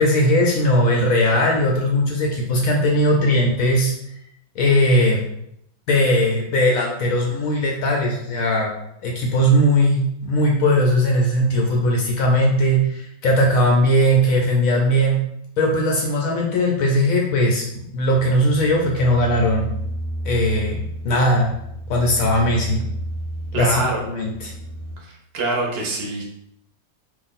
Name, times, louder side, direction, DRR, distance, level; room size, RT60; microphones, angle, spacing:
voice 1, 0.0-3.9 4.6-5.2 5.9-8.7 9.0-15.2 15.6-19.7 20.2-20.8 21.0-21.5 21.9-22.8 23.5-24.5, equal, 75° left, -1 dB, 0.8 m, -19 dB
sound 1, 18.1-25.0, right 1 dB, 90° right, 1.3 m, -32 dB
voice 2, 23.5-24.0 25.0-26.3, right 2 dB, 50° right, -1 dB, 0.8 m, -25 dB
2.8 x 2.5 x 4.0 m, 0.77 s
omnidirectional pair, 1.9 m